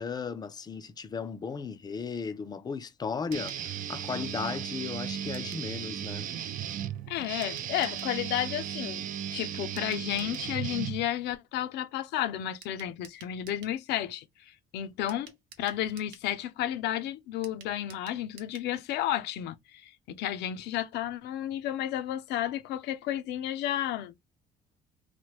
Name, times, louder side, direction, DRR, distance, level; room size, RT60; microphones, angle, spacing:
voice 1, 0.0-6.3, left 5 dB, 25° left, 0.5 m, -36 dB
Guitar, 3.3-11.3, right 10 dB, 55° right, 0.4 m, -36 dB
sound 1, 3.3-3.6 5.3-5.7 7.4-8.1 9.8-10.5 12.6-13.8 15.1-16.3 17.4-18.7 19.0-19.1 19.4-19.5, right 7 dB, 85° right, 0.9 m, -52 dB
voice 2, 7.1-24.1, left 12 dB, 80° left, 0.5 m, -32 dB
3.2 x 2.1 x 3.0 m
cardioid pair, 110°, 17 cm